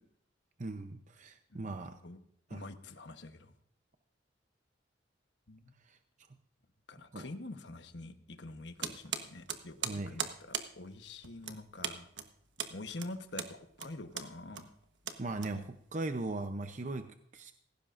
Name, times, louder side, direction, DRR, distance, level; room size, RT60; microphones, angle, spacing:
voice 1, 0.6-1.9 2.5-2.6 5.9-6.0 7.1-7.3 9.8-10.2 15.2-17.5, right 2 dB, 40° right, 7 dB, 0.7 m, -39 dB
voice 2, 1.5-2.2 2.5-3.5 5.5-5.7 6.9-12.1 12.7-14.7, left 2 dB, 70° left, 8 dB, 1.1 m, -46 dB
sound 1, 8.8-16.0, right 8 dB, 70° right, 1.2 m, -40 dB
17.5 x 15.5 x 2.6 m, 0.70 s
head